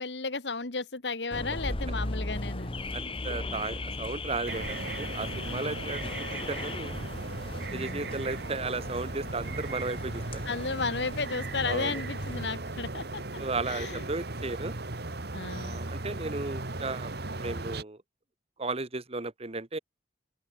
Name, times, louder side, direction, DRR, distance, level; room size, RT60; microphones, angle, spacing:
voice 1, 0.0-2.7 3.2-3.3 5.5-5.6 7.7-8.1 10.5-13.4 13.7-14.0 15.3-15.8, left 4 dB, 80° left, 1.9 m, -34 dB
Car / Alarm, 1.3-12.5, left 2 dB, 30° left, 1.7 m, -38 dB
voice 2, 2.9-6.0 6.5-6.9 7.7-10.4 11.7-12.0 13.4-14.7 15.5-17.1 17.4-18.0 18.6-19.8, right 3 dB, 35° right, 1.5 m, -35 dB
sound 1, 4.5-17.8, right 2 dB, 65° right, 2.1 m, -37 dB
open air
head